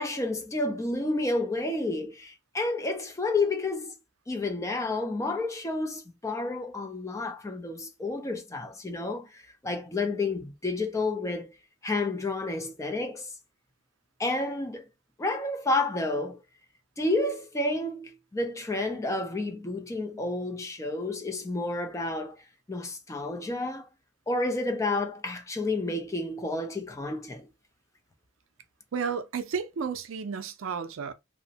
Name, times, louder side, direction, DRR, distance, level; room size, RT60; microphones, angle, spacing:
voice 1, 0.0-3.9 4.3-11.5 11.8-13.3 14.2-14.8 15.2-16.4 17.0-22.4 22.7-23.9 24.3-27.5, left 2 dB, 15° left, 0.4 m, -30 dB
voice 2, 28.9-31.1, right 6 dB, 75° right, 0.4 m, -32 dB
2.9 x 2.0 x 2.7 m
head